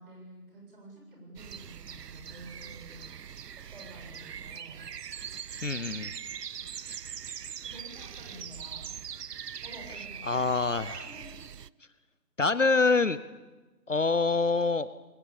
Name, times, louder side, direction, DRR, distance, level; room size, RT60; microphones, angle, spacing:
voice 1, 0.0-3.1 3.6-4.8 5.7-6.1 7.6-8.9 9.6-10.5 11.0-11.4, right 1 dB, 35° right, 0 dB, 7.2 m, -49 dB
sound 1, 1.4-11.7, right 8 dB, 80° right, 0.7 m, -42 dB
voice 2, 5.6-6.1 10.3-11.0 12.4-13.2 13.9-14.9, left 3 dB, 50° left, 15 dB, 0.8 m, -25 dB
22.0 x 20.0 x 8.7 m, 1.2 s
figure-of-eight pair, 170°, 48 cm